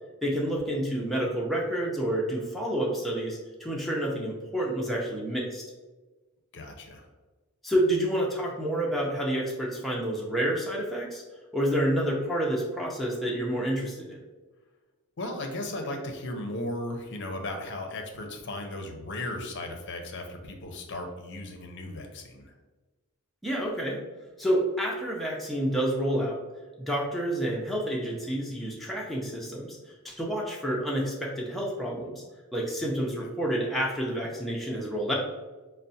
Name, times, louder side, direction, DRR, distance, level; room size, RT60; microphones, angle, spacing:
voice 1, 0.2-5.7 7.6-11.2 11.5-14.2 23.4-24.0 24.4-26.4 26.8-32.2 32.5-35.1, right 1 dB, ahead, -4 dB, 0.4 m, -29 dB
voice 2, 6.5-7.1 15.2-22.5 33.2-33.3, left 1 dB, 55° left, 3 dB, 0.5 m, -36 dB
5.5 x 2.0 x 2.6 m, 1.2 s
head